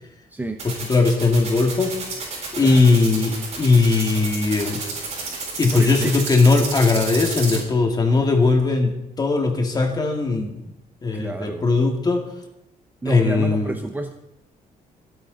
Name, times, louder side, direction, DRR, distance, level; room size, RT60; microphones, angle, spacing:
voice 1, 0.3-0.6 2.6-2.9 5.7-6.2 11.1-11.7 13.0-14.1, right 2 dB, 10° right, 6 dB, 0.7 m, -30 dB
sound 1, 0.6-7.6, right 4 dB, 45° right, 7.4 m, -30 dB
voice 2, 0.9-1.9 2.5-4.8 5.6-10.6 11.0-12.2 13.1-13.7, left 3 dB, 25° left, 3 dB, 2.3 m, -19 dB
26.0 x 9.1 x 4.1 m, 0.84 s
cardioid pair, 160°, 15 cm